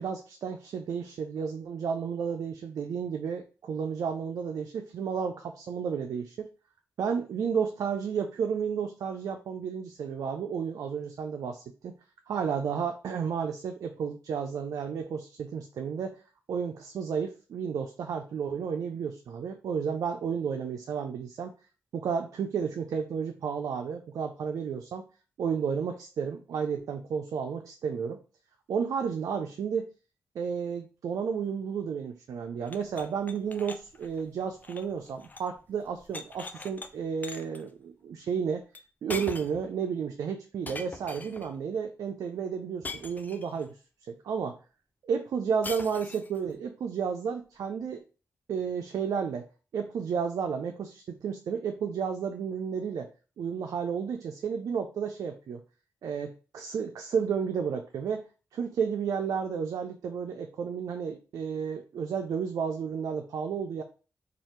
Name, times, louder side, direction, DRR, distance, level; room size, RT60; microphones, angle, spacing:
voice 1, 0.0-6.5 7.0-11.9 12.3-16.2 16.5-21.5 21.9-25.0 25.4-28.2 28.7-29.9 30.4-38.7 39.0-43.7 44.1-44.6 45.0-48.0 48.5-49.4 49.7-53.1 53.4-55.6 56.0-58.3 58.5-63.8, right 6 dB, 75° right, 4 dB, 0.3 m, -32 dB
sound 1, 32.7-35.6 35.8-36.9 37.2-37.6 38.7-38.8 39.1-39.7 40.7-41.5 42.8-43.7 45.6-46.4, left 3 dB, 30° left, 0.4 m, -42 dB
2.7 x 2.4 x 3.1 m, 0.35 s
supercardioid pair, 45°, 6 cm